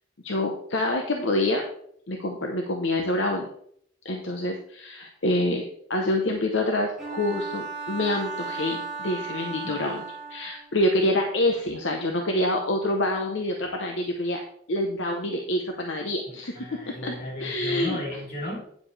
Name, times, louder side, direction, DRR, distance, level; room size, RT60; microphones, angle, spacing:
voice 1, 0.2-1.6 2.1-3.5 4.0-10.0 10.3-14.4 14.7-16.6 17.0-18.0, left 1 dB, 70° left, 2 dB, 1.0 m, -26 dB
Bowed string instrument, 7.0-10.7, right 4 dB, 5° right, 3.3 m, -35 dB
voice 2, 16.3-18.6, left 1 dB, 50° left, -3 dB, 4.1 m, -34 dB
9.4 x 7.1 x 3.3 m, 0.65 s
head